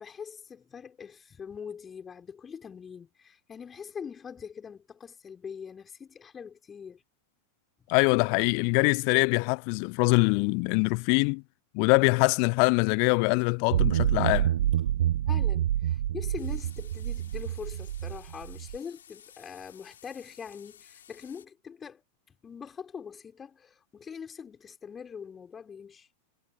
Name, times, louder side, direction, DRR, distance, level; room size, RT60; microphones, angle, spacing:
voice 1, 0.0-7.0 15.3-22.0 22.4-26.1, left 6 dB, 20° left, 6.3 m, -43 dB
voice 2, 7.9-11.4 11.7-14.5, left 40 dB or more, 45° left, 0.7 m, -23 dB
sound 1, 13.7-18.8, right 11 dB, 60° right, 1.5 m, -27 dB
sound 2, 16.4-21.5, left 9 dB, 65° left, 5.9 m, -55 dB
figure-of-eight pair, 90°, 0 cm